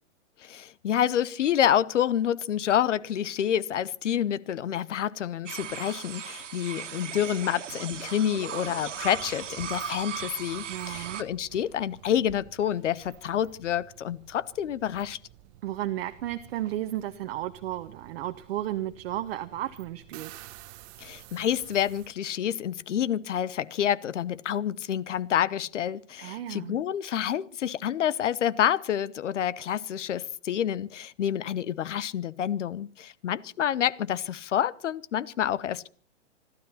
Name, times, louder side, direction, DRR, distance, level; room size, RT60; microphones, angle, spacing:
voice 1, 0.4-15.2 21.0-35.9, left 10 dB, 75° left, 1.0 m, -28 dB
sound 1, 5.5-11.2, right 9 dB, 75° right, 1.8 m, -37 dB
sound 2, 8.6-22.1, right 14 dB, 35° right, 1.1 m, -51 dB
voice 2, 10.7-11.2 15.6-20.3 26.2-26.8, right 13 dB, 55° right, 1.1 m, -33 dB
26.5 x 12.5 x 4.2 m
hypercardioid pair, 130°, 37 cm